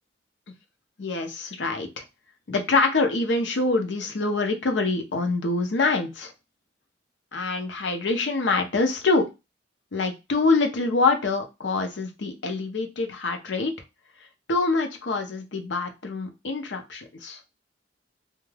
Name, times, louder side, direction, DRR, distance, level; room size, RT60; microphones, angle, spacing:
voice 1, 1.0-2.0 2.5-6.3 7.3-9.3 9.9-13.7 14.5-17.4, left 3 dB, 70° left, 5 dB, 0.6 m, -25 dB
2.3 x 2.3 x 3.2 m, 0.24 s
head